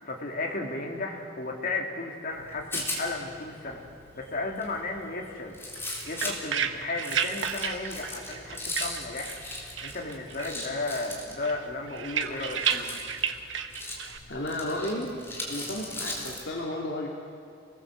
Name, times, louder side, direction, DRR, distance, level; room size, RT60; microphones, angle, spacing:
voice 1, 0.0-3.8 4.1-5.5 6.1-9.3 9.8-13.0, left 3 dB, 50° left, 0 dB, 3.0 m, -34 dB
Rattle, 2.3-16.5, left 1 dB, 15° left, 4.1 m, -39 dB
sound 1, 5.8-9.5 9.8-10.6 10.9-14.2, right 7 dB, 85° right, 1.2 m, -32 dB
voice 2, 14.3-15.1 15.5-17.1, left 1 dB, 65° left, -1 dB, 2.4 m, -32 dB
28.5 x 19.0 x 7.6 m, 2.7 s
head